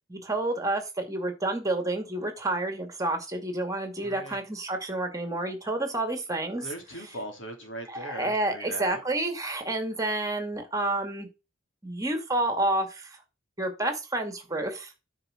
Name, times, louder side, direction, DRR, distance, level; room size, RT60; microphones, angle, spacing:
voice 1, 0.1-6.7 7.9-11.3 11.8-13.2 13.6-14.9, right 2 dB, 15° right, 2.2 m, -29 dB
voice 2, 4.0-4.4 6.6-9.0, equal, 70° left, 2.9 m, -40 dB
9.7 x 5.4 x 5.0 m
head